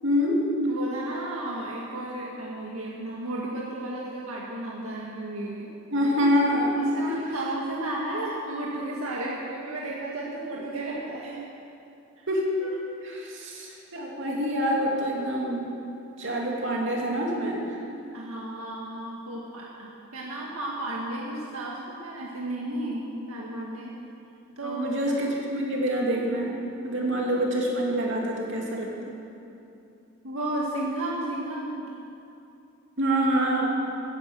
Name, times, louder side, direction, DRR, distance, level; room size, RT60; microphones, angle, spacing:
voice 1, 0.0-0.5 5.9-6.8 7.0-7.1 12.3-15.7 16.2-17.8 24.6-28.9 33.0-33.8, equal, 60° right, -2 dB, 3.0 m, -26 dB
voice 2, 0.7-5.7 6.9-11.4 12.2-12.3 18.1-24.0 24.6-24.9 30.2-31.9, right 1 dB, 85° right, -4 dB, 1.8 m, -33 dB
14.5 x 11.0 x 7.6 m, 2.7 s
head